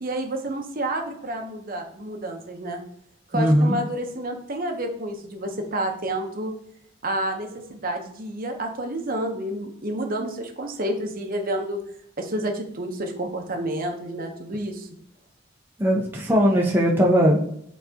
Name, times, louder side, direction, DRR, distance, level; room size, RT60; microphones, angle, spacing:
voice 1, 0.0-2.8 3.3-6.5 7.0-11.8 12.2-14.9, right 1 dB, 45° right, 3 dB, 1.0 m, -29 dB
voice 2, 3.3-3.8 15.8-17.6, equal, 10° right, -3 dB, 0.8 m, -19 dB
8.1 x 4.1 x 2.9 m, 0.72 s
head